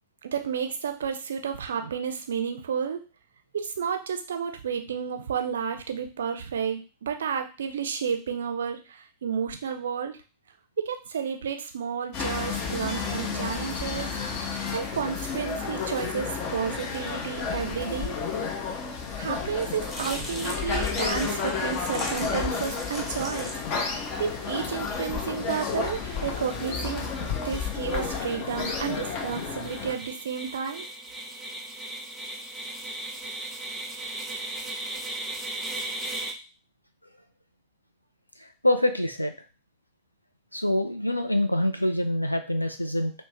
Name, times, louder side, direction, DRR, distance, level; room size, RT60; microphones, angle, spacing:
voice 1, 0.2-3.0 3.5-10.2 10.8-14.1 14.7-18.2 19.2-23.6 24.2-27.1 27.4-30.9, right 7 dB, 65° right, 6 dB, 0.4 m, -31 dB
sound 1, 12.1-29.9, left 5 dB, 40° left, 0.6 m, -31 dB
sound 2, 19.5-27.3, left 1 dB, 5° left, 0.9 m, -41 dB
sound 3, 26.1-36.3, right 2 dB, 15° right, 0.6 m, -38 dB
voice 2, 38.4-39.3 40.5-43.1, left 1 dB, 90° left, 7 dB, 0.3 m, -25 dB
2.5 x 2.0 x 3.2 m, 0.32 s
figure-of-eight pair, 90°, 0 cm